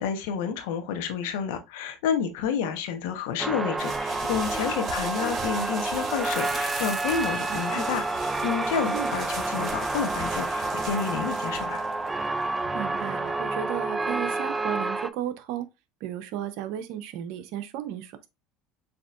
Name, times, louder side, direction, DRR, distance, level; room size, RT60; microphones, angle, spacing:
voice 1, 0.0-8.0 8.4-11.8, left 7 dB, 75° left, 0.9 m, -30 dB
sound 1, 3.4-15.1, right 2 dB, 15° right, 0.4 m, -29 dB
sound 2, 3.8-13.4, right 4 dB, 40° right, 2.2 m, -40 dB
sound 3, 5.7-9.5 10.0-10.1 10.9-11.0 11.2-11.9 12.8-12.9 13.3-13.5, left 1 dB, 5° left, 1.2 m, -41 dB
voice 2, 7.5-7.8 8.9-9.1 12.7-15.7 16.0-18.3, right 11 dB, 65° right, 0.7 m, -34 dB
7.0 x 2.9 x 2.4 m
hypercardioid pair, 85°, 0 cm